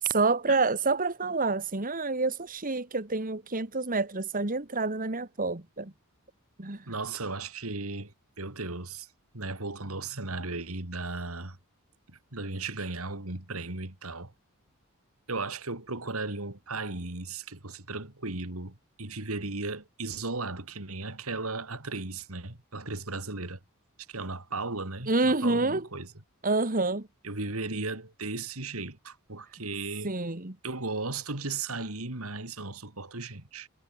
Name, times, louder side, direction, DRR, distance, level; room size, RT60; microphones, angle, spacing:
voice 1, 0.0-5.9 6.6-6.9 25.1-25.9 26.4-27.1 30.0-30.6, right 3 dB, 40° right, 2.0 m, -28 dB
voice 2, 6.9-9.1 9.3-11.6 12.1-14.3 15.3-23.6 24.1-26.1 27.2-30.1 30.6-33.7, right 3 dB, 80° right, 3.5 m, -36 dB
head